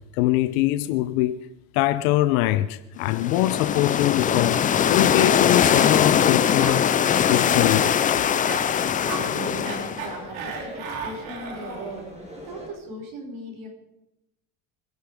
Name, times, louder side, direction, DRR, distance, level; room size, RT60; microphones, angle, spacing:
voice 1, 0.1-1.5 1.7-4.6 4.9-6.9 7.3-7.9, left 15 dB, 90° left, 0.9 m, -23 dB
sound 1, 3.0-10.1, left 8 dB, 20° left, 0.4 m, -21 dB
Cough, 5.4-12.0, right 5 dB, 85° right, 5.1 m, -37 dB
sound 2, 6.9-12.7, equal, 15° right, 5.0 m, -41 dB
voice 2, 8.8-12.2 12.4-13.7, right 2 dB, 50° right, 6.1 m, -38 dB
24.0 x 11.0 x 5.1 m
cardioid pair, 145°, 42 cm